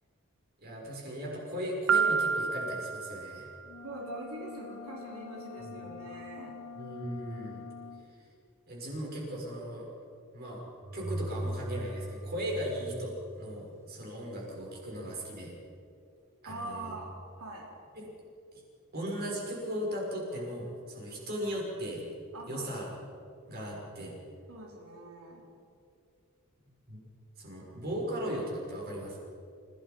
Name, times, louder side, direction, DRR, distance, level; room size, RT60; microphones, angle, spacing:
voice 1, 0.6-3.5 5.6-5.9 6.7-7.6 8.7-9.9 10.3-10.6 10.9-15.5 16.4-16.9 18.0-18.1 18.9-22.0 22.5-22.9 23.5-24.1 26.9-27.0 27.4-29.2, equal, 45° right, -2 dB, 6.3 m, -37 dB
Piano, 1.9-3.8, right 6 dB, 65° right, 0.7 m, -29 dB
sound 1, 3.6-8.1, left 5 dB, 85° left, 1.6 m, -46 dB
voice 2, 3.8-6.6 16.4-17.1 17.4-17.7 22.3-22.7 24.5-25.5, right 2 dB, 90° right, -2 dB, 3.8 m, -43 dB
sound 2, 10.8-13.7, right 1 dB, 15° right, 1.4 m, -38 dB
30.0 x 18.0 x 5.4 m, 2.5 s
head